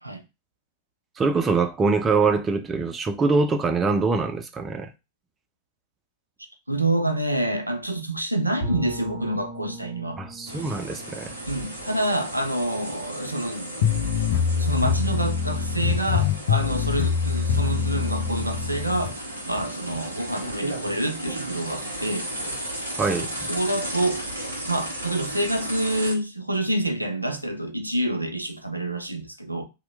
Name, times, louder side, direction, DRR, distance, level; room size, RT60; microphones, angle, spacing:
voice 1, 1.2-4.9 10.2-11.3 23.0-23.5, right 4 dB, 20° right, 0.5 m, -24 dB
voice 2, 6.7-10.2 11.5-13.8 14.6-22.3 23.2-24.3 24.7-29.6, right 1 dB, 85° right, 0.5 m, -27 dB
Bowed string instrument, 8.6-13.4, equal, 35° left, 1.6 m, -39 dB
sound 1, 10.5-26.1, right 1 dB, 90° left, 0.7 m, -35 dB
sound 2, 13.8-19.1, left 6 dB, 60° left, 0.5 m, -24 dB
2.9 x 2.1 x 3.2 m
figure-of-eight pair, 90°, 0 cm